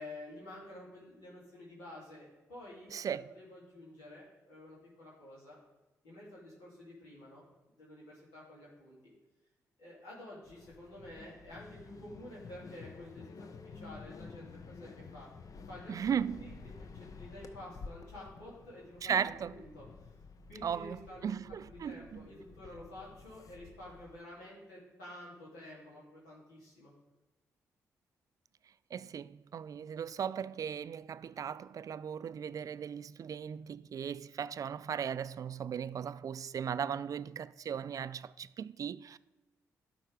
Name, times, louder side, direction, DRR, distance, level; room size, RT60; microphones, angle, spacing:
voice 1, 0.0-5.6 6.0-7.4 7.8-9.1 9.8-15.3 15.7-16.7 17.0-20.1 20.5-21.4 21.7-26.9, left 1 dB, 85° left, 3.1 m, -50 dB
voice 2, 2.9-3.3 15.9-16.5 19.0-19.5 20.6-22.2 28.9-39.2, right 8 dB, 55° right, 0.3 m, -37 dB
sound 1, 10.4-24.2, left 4 dB, 50° left, 0.7 m, -51 dB
11.5 x 4.5 x 4.8 m
hypercardioid pair, 45°, 7 cm